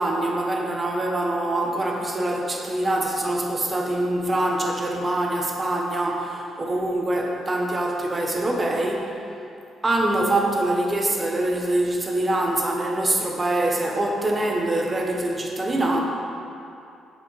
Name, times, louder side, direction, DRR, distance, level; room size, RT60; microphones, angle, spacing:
voice 1, 0.0-9.2 9.8-16.0, right 1 dB, 25° right, 0 dB, 0.9 m, -24 dB
7.2 x 4.8 x 4.0 m, 2.6 s
cardioid pair, 90°, 0 cm